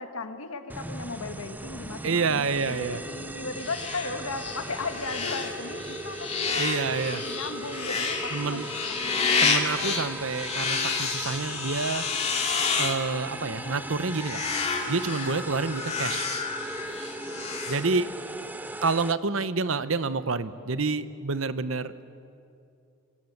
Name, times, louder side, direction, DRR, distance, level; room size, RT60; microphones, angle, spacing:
voice 1, 0.0-3.0 3.3-6.7 7.1-8.7 9.0-9.5 17.8-18.2, left 3 dB, 80° left, 7 dB, 1.8 m, -36 dB
sound 1, 0.7-19.1, right 1 dB, 10° right, 0.5 m, -39 dB
voice 2, 2.0-3.0 6.6-7.2 8.3-8.7 9.4-12.1 12.8-14.4 14.9-16.3 17.7-18.1 18.8-21.9, right 4 dB, 65° right, 13 dB, 0.9 m, -28 dB
sound 2, 2.4-18.4, left 5 dB, 30° left, 2.4 m, -31 dB
27.5 x 23.5 x 8.0 m, 2.6 s
head